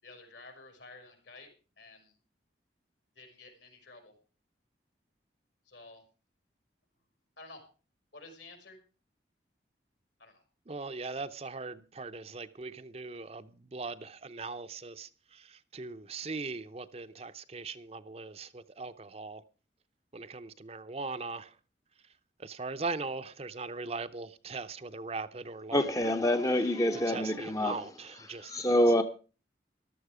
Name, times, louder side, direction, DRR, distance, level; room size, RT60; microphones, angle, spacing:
voice 1, 0.0-1.5 1.8-2.1 3.1-4.1 5.6-6.0 7.4-7.6 8.1-8.8 10.2-10.4, left 3 dB, 75° left, 5.1 m, -51 dB
voice 2, 10.7-19.4 20.1-21.6 22.4-26.2 26.9-28.8, right 3 dB, 35° right, 0.6 m, -40 dB
voice 3, 25.7-27.8 28.5-29.0, left 1 dB, 20° left, 0.7 m, -26 dB
15.0 x 12.0 x 4.9 m
head